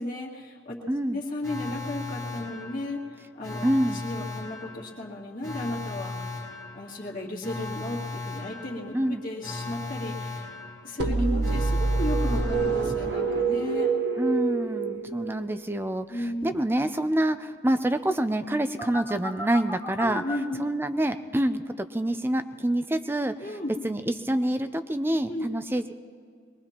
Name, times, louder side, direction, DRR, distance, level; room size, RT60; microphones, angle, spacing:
voice 1, 0.0-0.8 1.1-3.6 3.9-6.3 6.7-10.5 10.8-13.9 15.0-15.1 16.1-16.5 20.0-20.6 23.4-23.7 25.3-25.6, left 1 dB, 45° left, -3 dB, 2.1 m, -35 dB
voice 2, 0.9-1.2 3.6-4.0 8.9-9.2 11.1-11.6 14.2-20.2 20.6-23.6 23.8-26.0, right 1 dB, 10° right, 9 dB, 0.4 m, -27 dB
Alarm, 1.4-13.3 18.8-20.3, left 3 dB, 15° left, 1.4 m, -37 dB
sound 1, 11.0-15.7, right 4 dB, 65° right, 1.1 m, -26 dB
23.0 x 21.0 x 2.9 m, 2.1 s
head